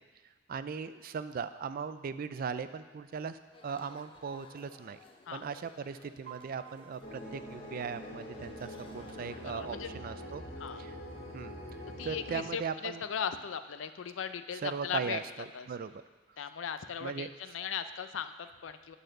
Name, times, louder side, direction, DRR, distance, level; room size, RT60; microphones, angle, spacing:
voice 1, 0.5-3.4 3.6-5.0 5.3-10.4 10.8-10.9 11.3-11.6 12.0-13.0 14.6-16.0 17.0-17.3, right 6 dB, 50° right, 12 dB, 0.4 m, -38 dB
sound 1, 3.5-9.6, left 3 dB, 30° left, 0.6 m, -57 dB
Piano, 6.3-8.3, right 10 dB, 70° right, 0.8 m, -55 dB
sound 2, 7.0-12.4, equal, 55° left, 2.3 m, -44 dB
voice 2, 9.4-9.9 10.6-10.8 12.0-15.2 15.5-15.7 16.4-19.0, left 7 dB, 80° left, 10 dB, 0.4 m, -38 dB
9.0 x 4.2 x 6.5 m, 1.4 s
head